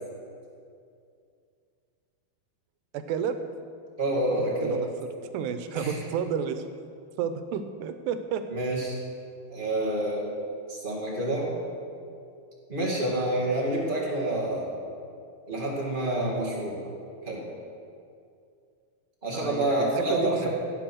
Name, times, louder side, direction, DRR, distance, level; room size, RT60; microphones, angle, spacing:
voice 1, 2.9-3.4 4.3-4.9 5.3-6.6 7.2-8.4 19.3-20.5, right 8 dB, 90° right, 9 dB, 2.9 m, -31 dB
voice 2, 4.0-4.8 5.7-6.0 8.5-9.0 9.5-10.3 10.7-11.5 12.7-14.7 15.5-16.8 17.2-17.4 19.2-20.5, right 1 dB, 25° right, -4 dB, 1.1 m, -28 dB
16.5 x 7.4 x 6.3 m, 2.4 s
omnidirectional pair, 4.7 m